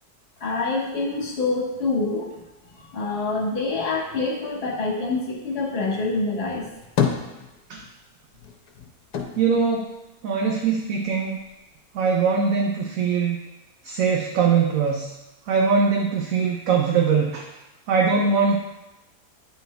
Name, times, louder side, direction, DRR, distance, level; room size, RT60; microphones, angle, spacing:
voice 1, 0.4-2.4 2.8-6.7, left 3 dB, 40° left, -2 dB, 1.6 m, -26 dB
sound 1, 6.5-8.0 8.3-10.7 11.1-12.0, left 7 dB, 90° left, 1.4 m, -29 dB
voice 2, 9.4-9.9 10.2-11.4 11.9-13.4 13.8-15.1 15.5-17.5 17.9-18.6, right 5 dB, 65° right, 0 dB, 1.0 m, -21 dB
9.2 x 4.4 x 3.3 m, 0.99 s
omnidirectional pair, 1.7 m